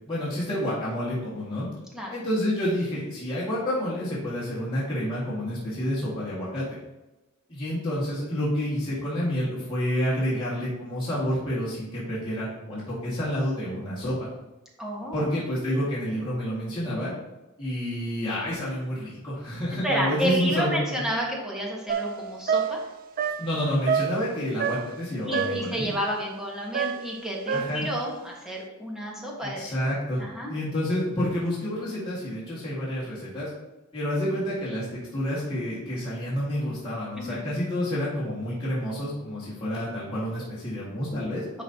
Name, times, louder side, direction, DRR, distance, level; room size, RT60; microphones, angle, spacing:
voice 1, 0.1-1.7 2.1-6.6 7.5-14.3 15.1-17.1 17.6-21.0 23.4-25.9 27.5-27.9 29.4-30.2 30.5-33.5 33.9-41.4, equal, 25° left, -10 dB, 1.9 m, -29 dB
voice 2, 14.8-15.3 19.8-22.8 25.2-29.7 30.2-30.5 37.2-37.5 41.5-41.6, equal, 5° right, -3 dB, 1.4 m, -30 dB
sound 1, 21.9-25.1 25.3-25.8 26.7-28.0, right 7 dB, 40° right, 0.3 m, -28 dB
10.5 x 4.1 x 2.9 m, 1.0 s
head